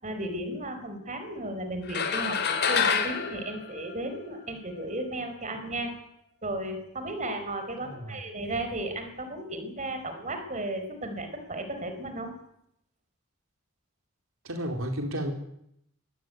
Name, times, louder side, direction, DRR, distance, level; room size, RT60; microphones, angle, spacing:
voice 1, 0.0-6.0 6.4-12.3, right 1 dB, 35° right, 7 dB, 4.7 m, -34 dB
sound 1, 1.9-4.5, left 6 dB, 55° left, 3.5 m, -28 dB
voice 2, 7.8-8.2 14.4-15.3, equal, 85° right, 3 dB, 4.3 m, -32 dB
22.0 x 19.0 x 9.5 m, 0.75 s
head